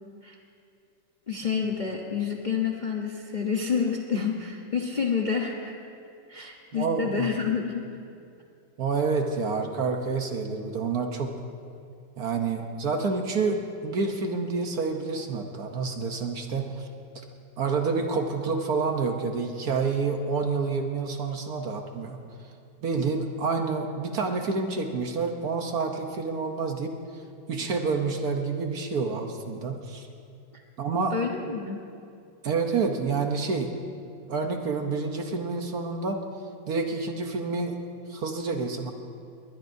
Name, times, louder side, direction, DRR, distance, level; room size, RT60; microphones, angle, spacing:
voice 1, 1.3-5.7 6.3-7.8 30.5-30.6 31.1-31.8, left 6 dB, 35° left, -1 dB, 0.7 m, -28 dB
voice 2, 6.4-7.3 8.8-11.3 12.2-16.9 17.1-17.2 17.6-22.2 22.8-27.2 27.5-30.1 30.8-31.1 32.4-33.7 34.3-36.2 36.7-37.8 38.1-38.9, right 4 dB, 55° right, 4 dB, 1.3 m, -28 dB
21.0 x 20.5 x 2.7 m, 2.5 s
omnidirectional pair, 2.1 m